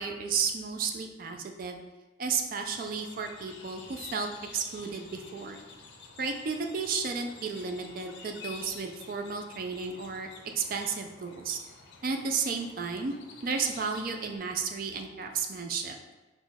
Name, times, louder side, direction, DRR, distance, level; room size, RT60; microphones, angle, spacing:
voice 1, 0.0-1.8 2.2-5.6 6.2-10.3 10.6-11.6 12.0-13.1 13.4-15.9, right 5 dB, 45° right, 4 dB, 0.3 m, -33 dB
sound 1, 2.6-14.4, left 5 dB, 60° left, 0.6 m, -50 dB
4.1 x 3.1 x 3.4 m, 1.1 s
head